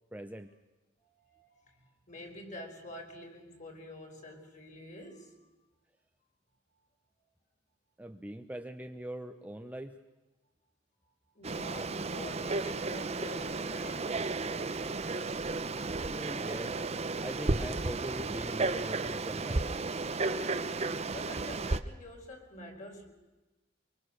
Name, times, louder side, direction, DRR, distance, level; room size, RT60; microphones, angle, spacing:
voice 1, 0.1-0.5 8.0-10.0 16.0-16.8 17.2-19.8, right 1 dB, 10° right, 6 dB, 0.9 m, -42 dB
voice 2, 1.3-5.5 11.3-14.5 21.1-23.1, left 1 dB, 40° left, 2 dB, 4.6 m, -47 dB
Frog, 11.4-21.8, right 3 dB, 35° right, 0.9 m, -33 dB
24.5 x 24.0 x 6.6 m, 1.1 s
head